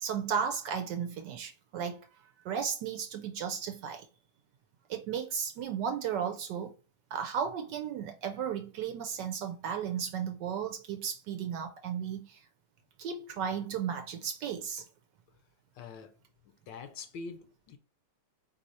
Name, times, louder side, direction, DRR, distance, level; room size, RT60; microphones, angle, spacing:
voice 1, 0.0-2.1 2.4-4.1 4.9-6.7 7.1-12.4 13.0-14.8, right 7 dB, 70° right, 1.1 m, -34 dB
voice 2, 15.8-16.2 16.7-17.8, left 4 dB, 75° left, 1.2 m, -44 dB
4.1 x 3.1 x 4.1 m
omnidirectional pair, 2.2 m